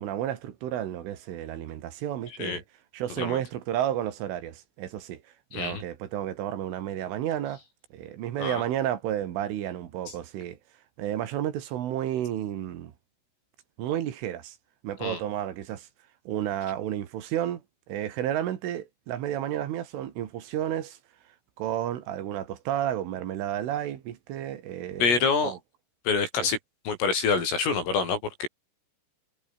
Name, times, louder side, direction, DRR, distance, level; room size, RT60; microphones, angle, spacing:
voice 1, 0.0-2.6 2.9-5.2 5.5-7.6 7.9-10.6 11.0-12.9 13.8-14.6 14.8-15.9 16.3-17.6 17.9-21.0 21.6-25.6 26.4-26.5, right 11 dB, 70° right, 4.5 m, -31 dB
voice 2, 5.5-5.8 8.4-8.6 15.0-15.2 25.0-25.5 26.1-26.6 26.9-28.5, left 5 dB, 75° left, 10.0 m, -26 dB
omnidirectional pair, 5.9 m